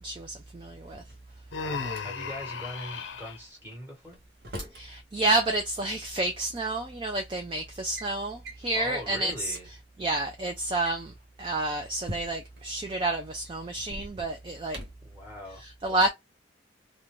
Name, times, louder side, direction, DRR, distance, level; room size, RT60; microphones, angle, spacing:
voice 1, 0.0-1.0 4.7-9.6 10.0-14.8 15.6-16.1, right 2 dB, 25° right, 0.3 m, -30 dB
Drawer open or close, 0.7-2.0 3.7-4.9 6.2-6.3 7.1-7.3 7.7-8.1 8.4-8.7 9.2-9.3 9.5-9.6 10.6-12.6 13.8-15.1, equal, 55° right, 0.8 m, -43 dB
Human voice, 1.5-3.4, left 5 dB, 85° left, 0.6 m, -35 dB
voice 2, 1.5-4.2 8.7-9.7 15.0-15.6, left 1 dB, 10° right, 1.2 m, -41 dB
2.5 x 2.2 x 3.0 m
head